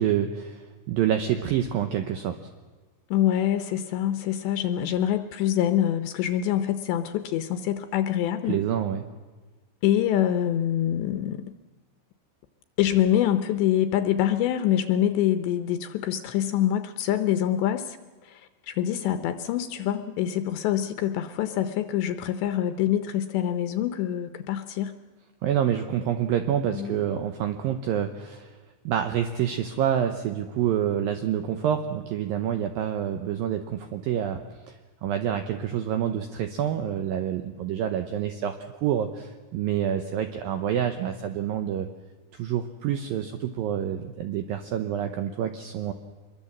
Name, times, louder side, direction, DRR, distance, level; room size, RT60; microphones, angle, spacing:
voice 1, 0.0-2.4 8.5-9.1 25.4-28.5 28.9-34.4 34.7-34.8 35.0-38.5 38.8-41.9 42.3-45.9, right 10 dB, 80° right, 7 dB, 2.1 m, -27 dB
voice 2, 3.1-8.6 9.8-11.5 12.8-18.0 18.2-24.9 26.7-27.0, left 11 dB, 75° left, 10 dB, 2.9 m, -25 dB
25.0 x 22.0 x 7.5 m, 1.4 s
omnidirectional pair, 5.4 m